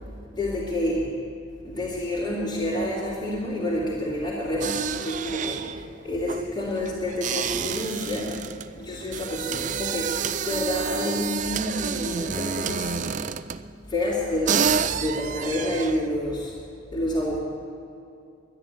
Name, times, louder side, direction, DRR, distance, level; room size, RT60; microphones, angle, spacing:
voice 1, 0.1-1.1 1.6-5.7 6.0-8.4 8.8-13.0 13.9-16.5 16.9-17.4, left 1 dB, 25° left, -8 dB, 2.9 m, -28 dB
sound 1, 4.6-13.7 14.2-14.3 14.5-16.1, right 7 dB, 40° right, 0.4 m, -29 dB
12.0 x 10.5 x 9.7 m, 2.5 s
head